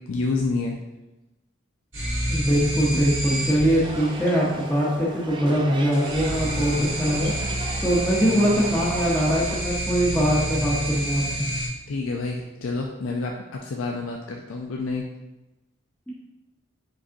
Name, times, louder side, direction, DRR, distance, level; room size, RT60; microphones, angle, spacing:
voice 1, 0.1-0.7 11.9-15.0, left 3 dB, 80° left, 0 dB, 0.4 m, -28 dB
sound 1, 1.9-4.3 5.9-11.7, right 1 dB, 65° right, 1.5 m, -29 dB
voice 2, 2.3-7.3 7.8-11.5, equal, 5° left, -7 dB, 0.7 m, -22 dB
sound 2, 3.8-9.6, right 2 dB, 25° right, 0.4 m, -37 dB
5.1 x 4.0 x 2.6 m, 1.0 s
head